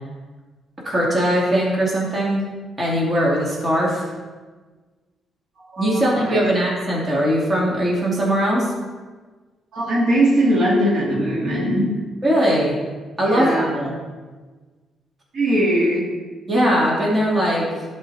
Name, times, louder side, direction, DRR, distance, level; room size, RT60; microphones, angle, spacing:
voice 1, 0.8-2.5 2.8-4.0 5.8-8.7 12.2-12.8 13.2-14.0 16.5-17.7, equal, 30° right, -5 dB, 2.3 m, -20 dB
voice 2, 5.7-6.4 9.7-11.8 13.2-13.7 15.3-16.1, right 1 dB, 60° right, -5 dB, 2.3 m, -20 dB
11.5 x 4.5 x 3.3 m, 1.4 s
cardioid pair, 90°, 0 cm